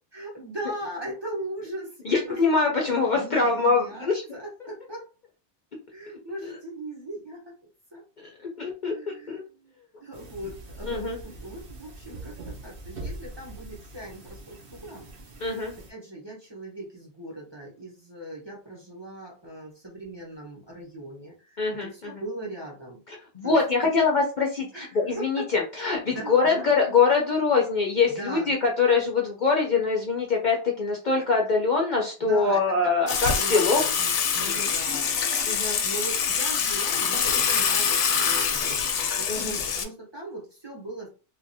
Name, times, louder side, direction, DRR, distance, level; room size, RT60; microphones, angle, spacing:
voice 1, 0.1-2.5 3.1-5.1 5.9-7.4 7.9-8.0 8.9-9.7 10.0-15.1 15.9-23.0 23.4-23.9 24.7-25.5 26.1-27.0 28.1-28.5 32.2-35.3 35.8-38.9 39.2-41.1, right 1 dB, 25° right, -3 dB, 0.8 m, -39 dB
voice 2, 2.0-4.2 8.2-8.3 8.6-9.4 10.8-11.2 15.4-15.7 21.6-22.1 23.1-33.8 34.4-34.7 35.5-35.8 39.3-39.6, left 4 dB, 50° left, -1 dB, 0.6 m, -24 dB
sound 1, 10.1-15.9, right 2 dB, 55° right, 0.9 m, -42 dB
Water / Water tap faucet / Sink (filling or washing), 33.1-39.8, left 6 dB, 85° left, 0.9 m, -25 dB
2.8 x 2.5 x 2.7 m, 0.33 s
omnidirectional pair, 1.2 m